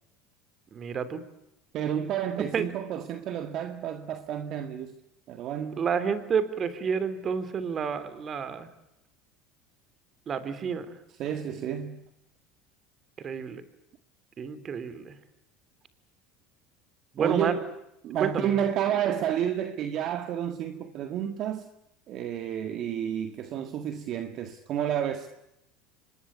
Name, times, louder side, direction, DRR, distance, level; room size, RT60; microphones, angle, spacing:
voice 1, 0.7-1.2 2.5-2.7 5.8-8.7 10.3-10.9 13.2-13.6 14.4-15.1 17.1-17.6 18.2-18.5, right 6 dB, 35° right, 3.5 m, -29 dB
voice 2, 1.7-5.0 5.3-5.8 11.2-12.1 17.2-17.7 18.0-21.7 22.1-25.3, right 9 dB, 50° right, 1.8 m, -30 dB
25.5 x 20.5 x 9.8 m
supercardioid pair, 115°, 0 cm